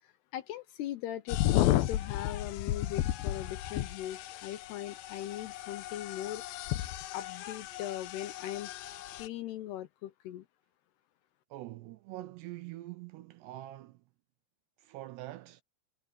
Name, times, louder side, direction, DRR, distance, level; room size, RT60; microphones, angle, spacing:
voice 1, 0.0-6.6 7.1-8.7 9.1-10.5, left 12 dB, 75° left, 2.7 m, -40 dB
sound 1, 1.3-9.3, left 14 dB, 90° left, 2.1 m, -33 dB
voice 2, 11.5-14.0 14.8-15.6, right 16 dB, 75° right, 2.6 m, -44 dB
omnidirectional pair, 5.4 m